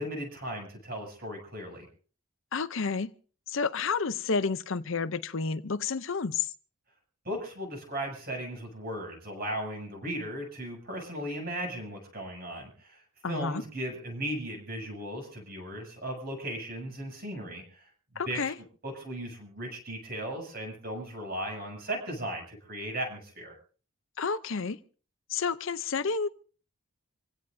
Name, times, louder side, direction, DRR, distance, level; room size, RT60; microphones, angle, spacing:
voice 1, 0.0-1.9 7.2-17.9 18.3-18.5 18.8-23.6, right 1 dB, 45° right, 7.5 m, -37 dB
voice 2, 2.5-3.1 3.5-6.5 13.2-13.6 18.2-18.5 24.2-24.8 25.3-26.3, left 5 dB, 60° left, 0.7 m, -30 dB
27.0 x 16.5 x 2.7 m
head